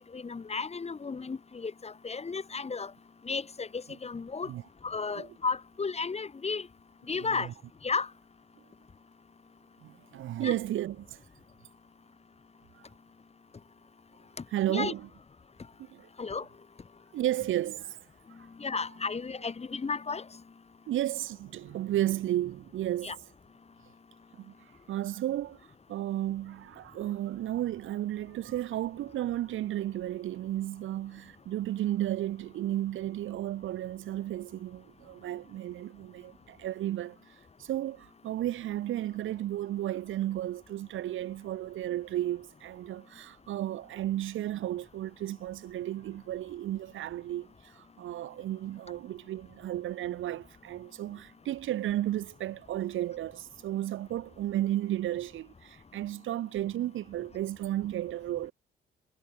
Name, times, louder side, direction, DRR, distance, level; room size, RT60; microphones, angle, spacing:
voice 1, 0.1-2.9 3.2-4.5 4.8-6.7 7.1-7.5 7.8-8.1 10.4-10.5 14.7-14.9 16.2-16.5 18.6-20.3 23.0-23.2, left 4 dB, 30° left, 4.0 m, -33 dB
voice 2, 7.2-7.5 9.8-11.2 14.5-15.1 15.9-16.1 17.1-18.0 20.9-23.1 24.3-24.5 24.9-25.6 25.9-37.2 37.6-58.5, right 13 dB, 80° right, 6.3 m, -33 dB
cardioid pair, 90°, 20 cm